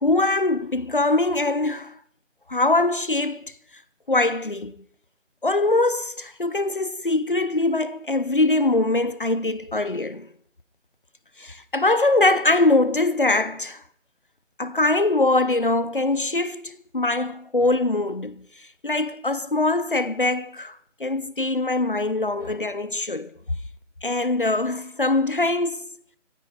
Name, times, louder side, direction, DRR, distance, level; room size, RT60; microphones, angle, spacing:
voice 1, 0.0-2.0 2.5-3.5 4.1-4.7 5.4-10.3 11.4-13.8 14.6-18.5 18.8-23.3 24.0-25.9, left 2 dB, 45° left, 0.7 m, -22 dB
20.0 x 15.0 x 4.1 m
figure-of-eight pair, 175°, 38 cm